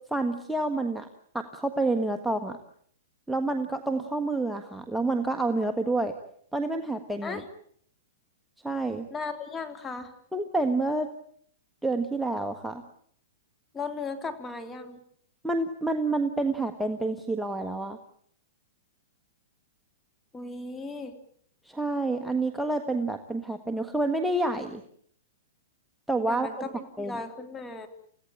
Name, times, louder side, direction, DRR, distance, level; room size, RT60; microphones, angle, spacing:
voice 1, 0.1-1.1 1.3-2.6 3.3-6.1 6.5-7.4 8.6-9.1 10.3-11.1 11.8-12.8 15.4-18.0 21.6-24.8 26.1-26.5 27.0-27.2, right 2 dB, ahead, 5 dB, 1.6 m, -28 dB
voice 2, 9.1-10.1 13.7-15.0 20.3-21.1 26.3-27.9, left 4 dB, 15° left, 7 dB, 3.2 m, -36 dB
29.5 x 16.5 x 8.9 m, 0.65 s
hypercardioid pair, 135°, 0 cm